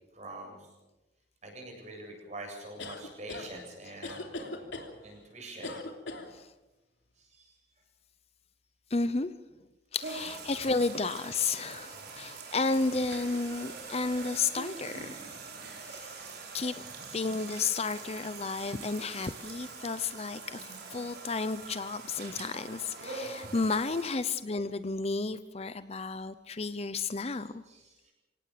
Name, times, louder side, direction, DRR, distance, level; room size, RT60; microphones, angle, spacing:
voice 1, 0.1-0.7 1.4-4.4 5.0-5.7 7.2-7.5 10.1-10.4 12.0-12.8 13.8-14.2 14.8-15.1 16.8-17.1 27.2-28.1, right 1 dB, 40° right, 2 dB, 7.9 m, -47 dB
Tosse feminina, 2.8-3.5 4.0-4.9 5.6-6.3, left 2 dB, 80° left, 3.1 m, -39 dB
voice 2, 8.9-9.3 9.9-15.3 15.8-16.1 16.5-16.8 17.1-20.6 20.9-27.6, left 4 dB, 35° left, 13 dB, 0.7 m, -32 dB
sound 1, 10.0-24.2, right 4 dB, 60° right, 4.8 m, -44 dB
26.5 x 18.0 x 6.8 m, 1.1 s
head